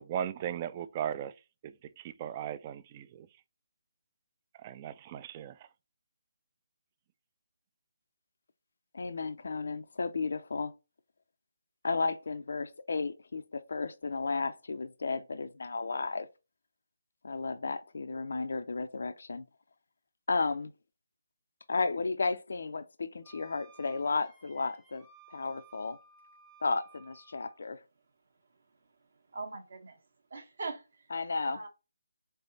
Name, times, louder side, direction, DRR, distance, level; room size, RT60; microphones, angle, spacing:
voice 1, 0.0-1.3 1.6-3.3 4.6-5.7, right 9 dB, 25° right, 0.3 m, -37 dB
voice 2, 8.9-10.7 11.8-16.3 17.2-19.4 20.3-20.7 21.7-26.0 26.6-27.8 31.1-31.6, left 4 dB, 65° left, 0.4 m, -33 dB
Wind instrument woodwind instrument, 23.2-27.6, right 5 dB, 5° right, 0.8 m, -58 dB
voice 3, 29.0-30.0 30.3-31.1 31.4-31.7, right 3 dB, 60° right, 1.2 m, -42 dB
3.9 x 3.4 x 3.9 m
figure-of-eight pair, 150°, 0 cm